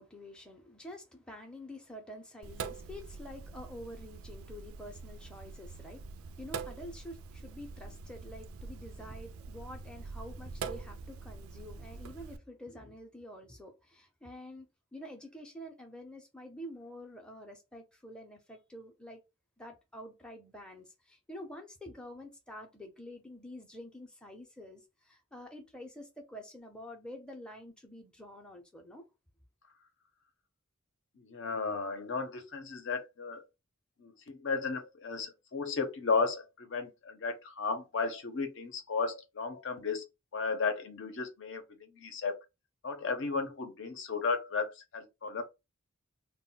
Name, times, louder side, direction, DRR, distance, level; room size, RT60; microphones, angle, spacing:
voice 1, 0.0-19.2 19.6-29.0, left 1 dB, 5° left, 0.5 m, -48 dB
Sink (filling or washing), 2.4-12.4, right 5 dB, 80° right, 0.4 m, -44 dB
voice 2, 31.2-33.4 34.0-40.1 40.3-42.4 42.8-45.4, left 4 dB, 60° left, 0.6 m, -34 dB
2.1 x 2.1 x 3.7 m
head